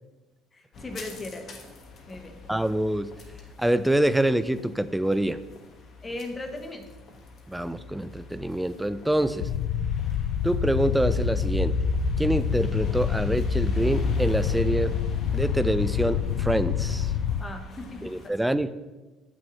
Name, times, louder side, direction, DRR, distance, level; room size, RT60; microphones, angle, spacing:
voice 1, 0.5-1.6 2.1-2.4 6.0-6.9 17.4-18.4, left 2 dB, 25° left, 5 dB, 0.9 m, -38 dB
sound 1, 0.7-18.3, equal, 55° left, 1.2 m, -37 dB
voice 2, 2.5-3.1 3.6-5.4 7.5-9.5 10.4-11.8 12.2-15.0 15.3-17.1 18.0-18.8, right 1 dB, 5° right, 14 dB, 0.3 m, -26 dB
sound 2, 9.4-17.4, left 9 dB, 75° left, 0.3 m, -27 dB
7.4 x 6.1 x 3.0 m, 1.2 s
supercardioid pair, 75°, 0 cm